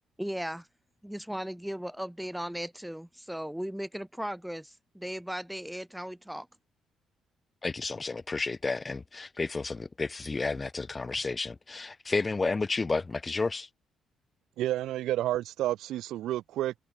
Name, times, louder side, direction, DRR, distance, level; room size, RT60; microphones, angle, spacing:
voice 1, 0.2-0.7 1.0-6.5, equal, 5° right, 5.3 m, -37 dB
voice 2, 7.6-13.7, left 3 dB, 25° left, 1.5 m, -31 dB
voice 3, 14.6-16.7, right 14 dB, 85° right, 0.5 m, -30 dB
cardioid pair, 90°, 0 cm